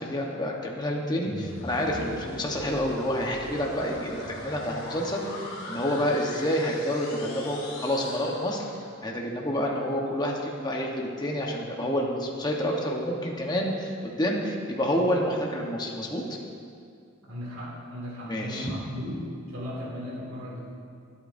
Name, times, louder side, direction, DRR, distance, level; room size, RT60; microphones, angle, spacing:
voice 1, 0.0-16.4 18.3-18.7, equal, 20° left, -1 dB, 1.2 m, -29 dB
sound 1, 1.2-9.1, left 1 dB, 75° left, 2.5 m, -39 dB
voice 2, 17.3-19.2 19.5-20.6, equal, 80° right, -5 dB, 2.4 m, -36 dB
24.5 x 8.4 x 2.7 m, 2.3 s
head